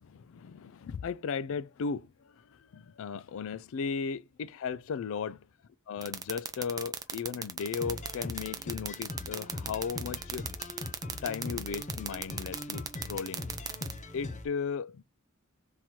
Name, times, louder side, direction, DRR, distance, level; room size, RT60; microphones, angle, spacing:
voice 1, 0.0-5.5 5.9-10.5 11.2-12.8 13.1-13.5 14.1-15.0, left 6 dB, 65° left, 0.4 m, -36 dB
sound 1, 6.0-13.9, right 6 dB, 15° right, 0.5 m, -35 dB
sound 2, 7.6-14.5, left 2 dB, 35° left, 0.7 m, -41 dB
3.8 x 3.0 x 4.3 m
head